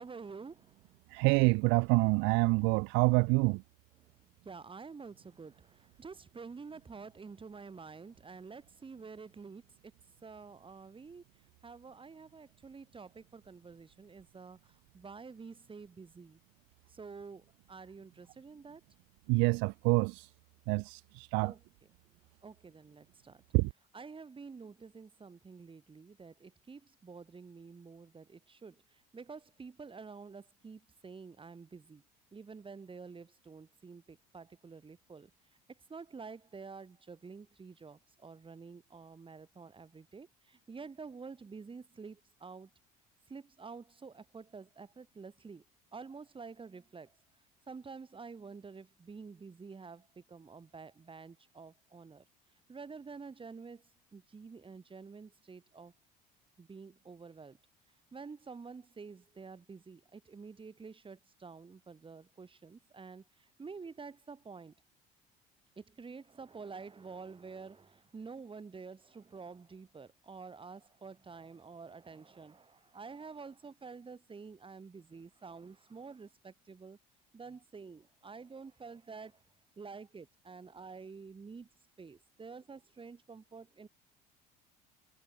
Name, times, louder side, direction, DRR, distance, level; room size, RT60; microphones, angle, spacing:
voice 1, 0.0-1.0 4.0-4.2 4.4-9.9 10.2-11.2 11.6-16.4 16.9-18.8 21.4-21.6 22.4-23.4 23.9-32.0 32.3-35.3 35.7-42.7 43.3-45.6 45.9-47.2 47.7-52.3 52.7-55.9 56.6-57.6 58.1-64.7 65.8-77.0 77.3-79.4 79.8-81.7 82.0-83.9, right 5 dB, 25° right, 4.0 m, -49 dB
voice 2, 1.1-3.6 19.3-20.3 20.7-21.5 23.5-23.7, right 31 dB, 65° right, 0.7 m, -27 dB
hypercardioid pair, 65°, 20 cm